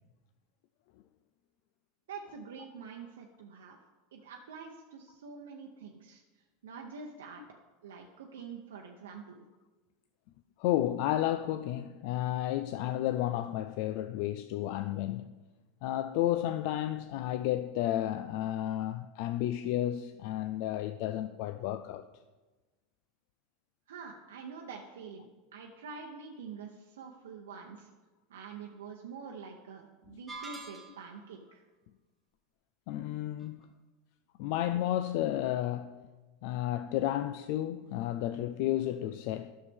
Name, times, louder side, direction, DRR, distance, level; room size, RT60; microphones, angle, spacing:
voice 1, 2.1-3.8 4.1-6.2 6.6-7.4 7.8-9.4 23.9-27.9 28.3-31.6, right 5 dB, 90° right, 0.7 m, -46 dB
voice 2, 10.6-15.4 15.8-22.1 30.1-30.2 32.9-33.7 34.4-36.0 36.4-39.5, left 13 dB, 65° left, 0.3 m, -32 dB
sound 1, 30.3-31.3, right 4 dB, 5° right, 1.6 m, -44 dB
9.8 x 6.5 x 3.5 m
supercardioid pair, 110°, 0 cm